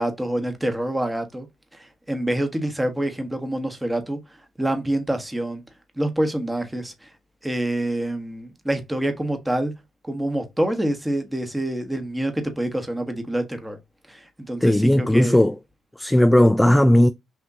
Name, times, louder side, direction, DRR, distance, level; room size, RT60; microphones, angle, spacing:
voice 1, 0.0-1.5 1.7-4.2 4.6-5.6 6.0-7.1 7.4-9.7 10.0-13.8 14.1-15.4, right 1 dB, 10° right, 1.3 m, -26 dB
voice 2, 14.6-15.5 16.0-17.1, left 1 dB, 10° left, 0.3 m, -16 dB
6.0 x 2.8 x 2.7 m
cardioid pair, 90°, 0 cm